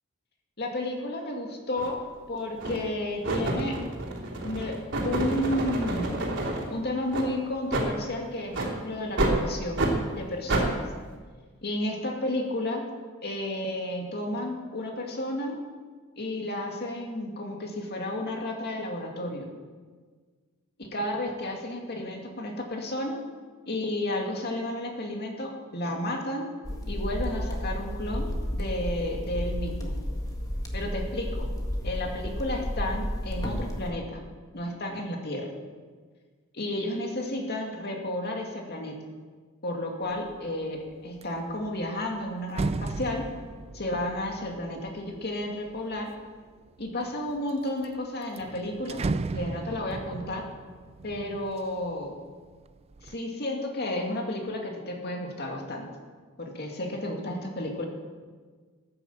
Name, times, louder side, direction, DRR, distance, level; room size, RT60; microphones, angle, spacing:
voice 1, 0.6-3.8 4.4-6.2 6.7-10.8 11.6-12.9 13.2-15.6 16.2-19.5 20.8-23.2 23.7-26.5 26.9-30.0 30.7-31.5 31.8-34.3 34.5-35.6 36.5-39.0 39.6-43.3 43.7-46.1 46.8-49.0 49.3-50.5 51.0-52.2 53.0-55.9 56.4-57.8, left 1 dB, 50° left, 1 dB, 2.4 m, -32 dB
sound 1, 1.8-1.9 2.6-2.9 3.2-6.6 7.1-7.3 7.7-7.9 8.5-8.7 9.2-9.4 9.8-9.9 10.5-10.7, right 2 dB, 55° right, 3.2 m, -28 dB
sound 2, 26.6-33.9, equal, 15° left, 1.7 m, -32 dB
sound 3, 40.1-40.5 40.9-46.2 46.8-47.5 47.8-47.9 48.2-52.1 52.5-53.1, right 3 dB, 30° right, 0.3 m, -36 dB
13.5 x 9.8 x 7.4 m, 1.5 s
head